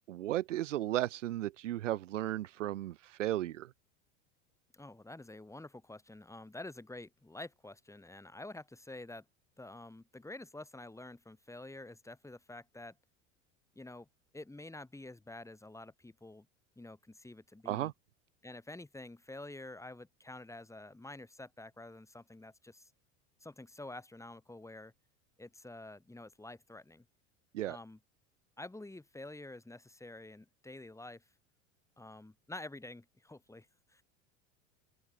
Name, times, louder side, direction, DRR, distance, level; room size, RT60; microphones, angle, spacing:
voice 1, 0.1-3.7 17.6-17.9 27.5-27.8, right 14 dB, 90° right, 1.6 m, -35 dB
voice 2, 4.7-9.2 9.6-12.9 13.8-14.1 14.3-16.5 16.8-17.9 18.4-22.9 23.4-24.9 25.4-27.0 27.6-28.0 28.6-31.2 32.0-34.0, left 2 dB, 10° left, 7.9 m, -48 dB
open air
hypercardioid pair, 95°, 36 cm